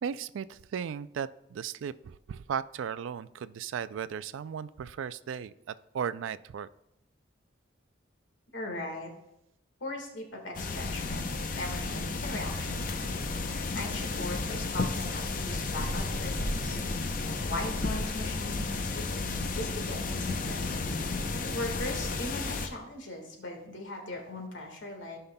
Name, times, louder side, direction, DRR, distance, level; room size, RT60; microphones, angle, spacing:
voice 1, 0.0-6.7, right 7 dB, 80° right, 16 dB, 0.3 m, -36 dB
voice 2, 8.5-9.1 9.8-11.3 11.5-13.4 13.7-16.8 17.2-20.7 20.9-25.2, left 1 dB, 75° left, 2 dB, 1.6 m, -39 dB
sound 1, 10.5-22.7, left 3 dB, 45° left, 0.6 m, -32 dB
15.0 x 5.6 x 2.2 m, 0.83 s
head